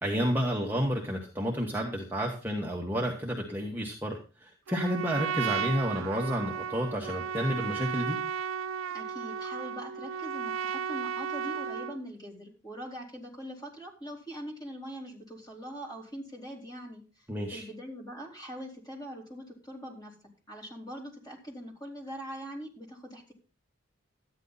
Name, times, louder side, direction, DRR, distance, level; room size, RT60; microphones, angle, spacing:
voice 1, 0.0-8.2 17.3-17.6, equal, 10° right, -1 dB, 1.5 m, -31 dB
Trumpet, 4.7-12.0, right 7 dB, 80° right, 0.5 m, -34 dB
voice 2, 8.9-17.3 17.5-20.1 20.5-23.3, equal, 20° left, -2 dB, 4.1 m, -42 dB
13.0 x 10.0 x 4.1 m, 0.34 s
head